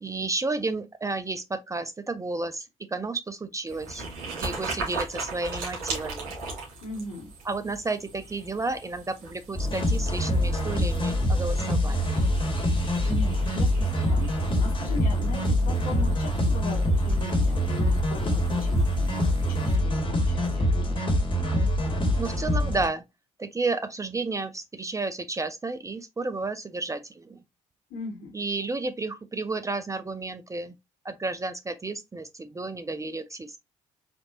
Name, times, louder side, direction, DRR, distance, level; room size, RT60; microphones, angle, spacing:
voice 1, 0.0-6.3 7.5-12.3 22.2-23.0 23.4-27.4 28.3-30.7 31.0-33.6, right 3 dB, 20° right, 0.5 m, -32 dB
sound 1, 3.7-19.8, right 3 dB, 65° right, 2.0 m, -39 dB
voice 2, 6.8-7.3 13.0-21.1 27.9-28.4, left 2 dB, 55° left, 1.7 m, -39 dB
sound 2, 9.5-22.9, left 1 dB, 30° left, 1.7 m, -25 dB
4.3 x 2.9 x 2.5 m
figure-of-eight pair, 45°, 17 cm